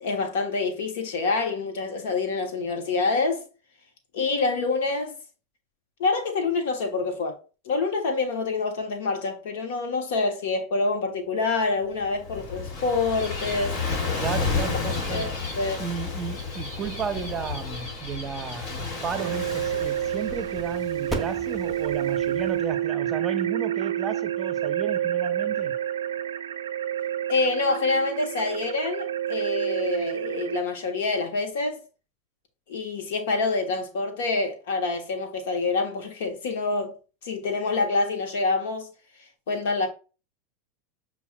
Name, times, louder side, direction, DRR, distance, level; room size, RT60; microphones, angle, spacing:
voice 1, 0.0-3.4 4.1-5.2 6.0-7.4 7.6-13.8 15.1-15.3 15.6-15.8 27.3-31.8 32.7-36.9 37.2-38.9 39.5-39.9, left 3 dB, 70° left, 1.0 m, -26 dB
Gull seagull / Waves surf, 11.9-22.5, left 4 dB, 55° left, 1.7 m, -32 dB
voice 2, 14.2-15.3 15.8-25.7, right 6 dB, 30° right, 0.6 m, -33 dB
sound 1, 19.2-30.6, right 11 dB, 80° right, 0.4 m, -28 dB
sound 2, 21.0-25.8, right 1 dB, 5° right, 0.8 m, -41 dB
6.9 x 2.3 x 2.2 m
hypercardioid pair, 95°, 0 cm